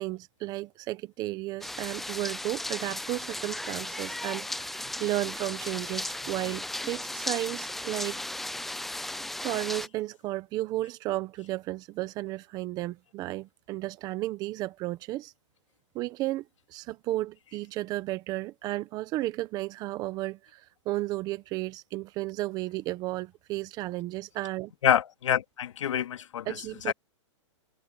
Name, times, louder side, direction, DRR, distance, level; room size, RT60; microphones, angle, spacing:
voice 1, 0.0-8.2 9.4-15.3 15.9-16.4 16.7-24.7 26.5-26.9, right 17 dB, 25° right, 1.1 m, -33 dB
sound 1, 1.6-9.9, left 1 dB, ahead, 0.4 m, -36 dB
voice 2, 24.8-26.5 26.9-27.0, left 10 dB, 75° left, 2.2 m, -26 dB
hypercardioid pair, 160°, 16 cm